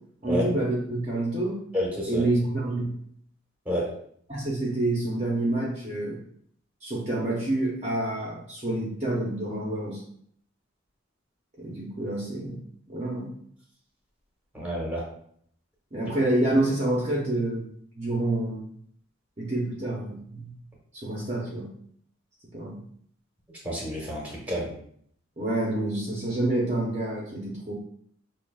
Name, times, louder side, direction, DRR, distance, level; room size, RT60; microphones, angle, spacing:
voice 1, 0.2-1.6 2.1-3.0 4.3-6.2 6.8-10.0 11.6-12.6 12.9-13.3 15.9-17.7 17.9-18.7 19.4-20.5 21.0-21.7 22.5-22.8 25.4-27.7, right 1 dB, 30° right, -5 dB, 0.7 m, -28 dB
voice 2, 1.7-2.2 3.7-3.8 14.5-15.0 23.6-24.2 24.5-24.7, equal, 5° right, -3 dB, 1.1 m, -28 dB
5.5 x 2.8 x 2.3 m, 0.64 s
head